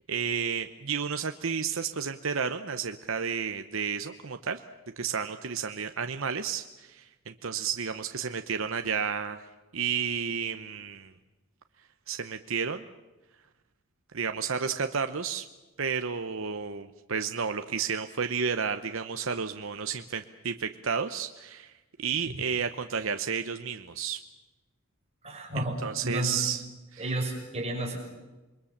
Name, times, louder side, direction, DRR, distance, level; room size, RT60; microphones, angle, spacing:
voice 1, 0.1-4.6 5.0-9.5 9.7-11.1 12.1-12.8 14.1-15.5 15.8-21.7 22.0-24.2 25.8-26.6 26.9-27.0, right 6 dB, 60° right, 8 dB, 0.9 m, -31 dB
voice 2, 25.2-26.4 27.0-28.0, right 1 dB, 30° right, 1 dB, 6.0 m, -32 dB
27.5 x 22.0 x 7.3 m, 1.1 s
head